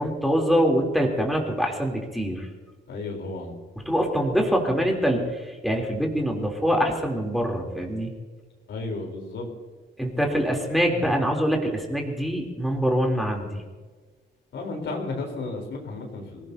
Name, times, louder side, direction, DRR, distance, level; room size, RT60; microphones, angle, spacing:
voice 1, 0.0-2.5 3.8-8.1 10.0-13.6, equal, ahead, 0 dB, 3.2 m, -24 dB
voice 2, 2.9-3.5 8.7-9.5 14.5-16.5, left 3 dB, 80° left, 2 dB, 3.8 m, -33 dB
25.0 x 17.5 x 2.8 m, 1.4 s
cardioid pair, 120°, 19 cm